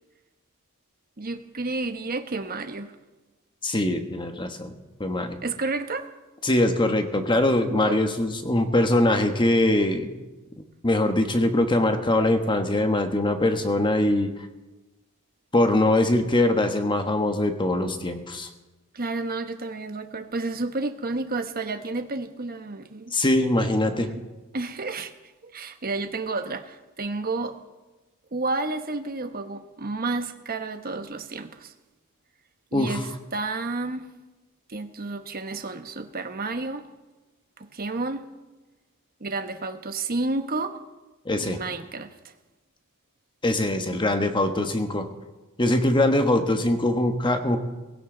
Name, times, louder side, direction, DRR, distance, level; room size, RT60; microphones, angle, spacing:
voice 1, 1.2-2.9 5.4-6.1 7.7-8.0 18.9-23.2 23.6-24.2 24.5-25.1 25.4-27.6 28.3-31.7 32.7-34.1 34.7-36.9 37.6-38.2 39.2-40.8 41.4-42.3, right 3 dB, 45° right, 1.2 m, -31 dB
voice 2, 3.6-4.7 5.0-5.4 6.4-10.1 10.8-14.3 15.5-18.5 23.1-24.1 32.7-33.0 41.2-41.6 43.4-45.0 45.6-47.6, left 1 dB, 20° left, 1.4 m, -22 dB
20.0 x 16.5 x 3.9 m
head